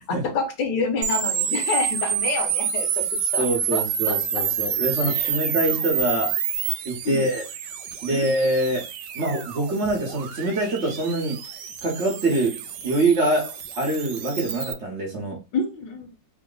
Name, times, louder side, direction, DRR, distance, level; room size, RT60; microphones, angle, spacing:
voice 1, 0.1-3.1 3.3-3.4 3.7-4.2 5.0-5.3 7.0-7.2 8.1-8.2 15.5-16.1, left 4 dB, 80° left, 4 dB, 1.6 m, -27 dB
sound 1, 1.0-14.7, right 8 dB, 80° right, 1.2 m, -28 dB
voice 2, 3.4-6.4 6.8-7.4 8.0-8.9 9.1-11.4 11.8-15.4, right 2 dB, 50° right, -1 dB, 1.0 m, -25 dB
3.7 x 2.1 x 3.7 m, 0.28 s
omnidirectional pair, 1.9 m